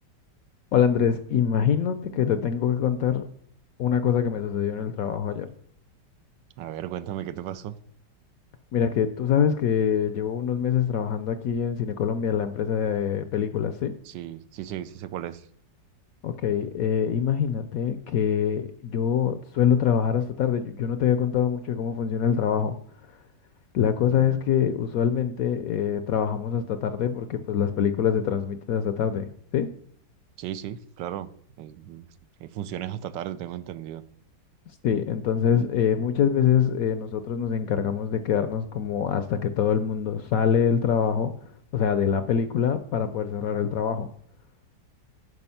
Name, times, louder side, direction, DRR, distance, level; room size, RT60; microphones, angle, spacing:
voice 1, 0.7-3.2 3.8-5.5 8.7-13.9 16.2-22.7 23.7-29.7 34.8-41.3 41.7-44.1, left 8 dB, 70° left, 0.8 m, -24 dB
voice 2, 6.6-7.8 14.0-15.5 24.1-24.4 30.4-31.3 31.6-32.1 32.4-34.0, right 11 dB, 90° right, 1.3 m, -35 dB
9.7 x 4.9 x 5.7 m
omnidirectional pair, 1.9 m